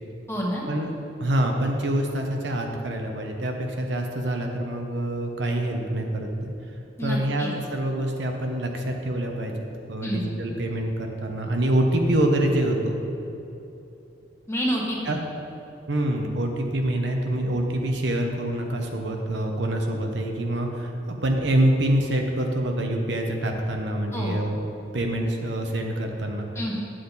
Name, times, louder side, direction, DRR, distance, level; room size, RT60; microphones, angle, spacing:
voice 1, 0.3-0.7 7.0-7.5 10.0-10.3 14.5-15.2 24.1-24.4 26.5-26.8, equal, 15° left, -3 dB, 1.3 m, -28 dB
voice 2, 1.2-6.5 7.0-13.0 15.1-15.2 15.9-24.6 24.9-26.5, right 1 dB, 70° right, 2 dB, 0.9 m, -26 dB
8.6 x 7.6 x 4.0 m, 2.9 s
head